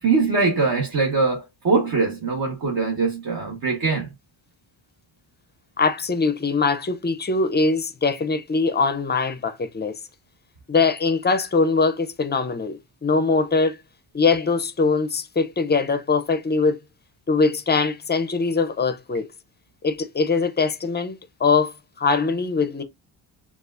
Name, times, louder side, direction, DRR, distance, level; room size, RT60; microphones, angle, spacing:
voice 1, 0.0-4.1, right 4 dB, 50° right, 1.1 m, -22 dB
voice 2, 5.8-9.9 10.7-13.8 14.1-16.8 17.3-19.3 19.8-22.8, left 4 dB, 25° left, 0.5 m, -22 dB
6.7 x 2.4 x 2.4 m
cardioid pair, 135°, 45 cm